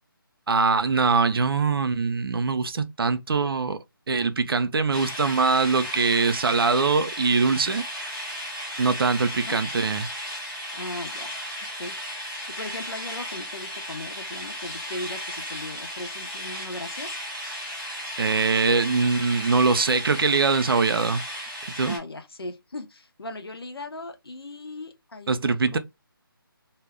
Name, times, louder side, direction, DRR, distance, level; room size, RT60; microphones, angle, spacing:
voice 1, 0.5-3.8 4.1-7.8 8.8-10.1 18.2-21.2 21.8-22.0 25.3-25.8, right 4 dB, 75° right, 0.5 m, -22 dB
sound 1, 4.9-22.0, equal, 5° left, 0.9 m, -35 dB
voice 2, 10.7-11.3 11.8-11.9 12.6-17.2 21.8-25.8, left 2 dB, 85° left, 0.7 m, -38 dB
2.1 x 2.1 x 3.4 m
figure-of-eight pair, 155°, 12 cm